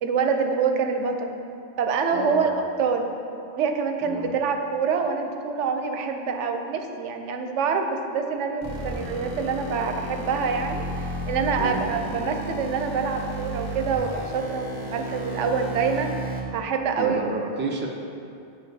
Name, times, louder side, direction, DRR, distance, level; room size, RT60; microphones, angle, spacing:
voice 1, 0.0-1.4 1.8-2.5 2.8-3.1 3.5-17.3, right 5 dB, 85° right, 5 dB, 0.9 m, -26 dB
voice 2, 2.1-2.4 4.0-4.3 11.6-11.9 17.0-17.9, right 2 dB, 15° right, -2 dB, 0.4 m, -30 dB
sound 1, 8.6-16.4, right 1 dB, 55° right, 1.3 m, -33 dB
10.5 x 4.5 x 2.7 m, 2.6 s
omnidirectional pair, 1.2 m